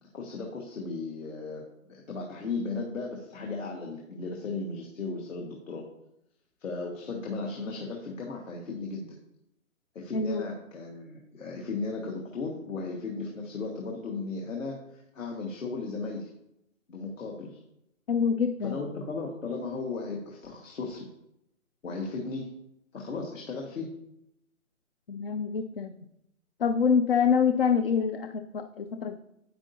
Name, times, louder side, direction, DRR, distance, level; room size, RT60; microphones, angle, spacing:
voice 1, 0.0-5.8 6.6-9.2 10.0-16.3 16.9-17.6 18.6-21.1 21.8-22.5 22.9-23.9, left 3 dB, 65° left, 0 dB, 1.8 m, -36 dB
voice 2, 10.1-10.5 18.1-18.8 25.1-25.9 26.6-29.2, left 6 dB, 45° left, 9 dB, 0.5 m, -26 dB
9.4 x 8.8 x 2.8 m, 0.83 s
figure-of-eight pair, 145°, 42 cm